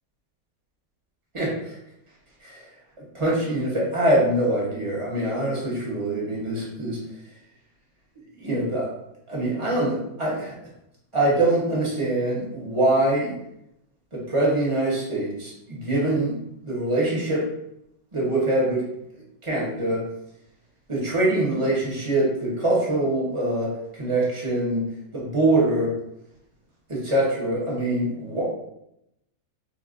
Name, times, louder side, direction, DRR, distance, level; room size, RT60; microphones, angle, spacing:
voice 1, 1.3-1.8 2.4-2.7 3.1-7.0 8.3-8.9 9.3-10.5 11.1-13.3 14.1-16.3 16.6-17.5 18.1-18.8 19.4-20.0 20.9-24.9 25.1-25.9 26.9-28.4, right 1 dB, 30° right, -5 dB, 0.6 m, -24 dB
4.1 x 2.4 x 2.4 m, 0.81 s
omnidirectional pair, 1.9 m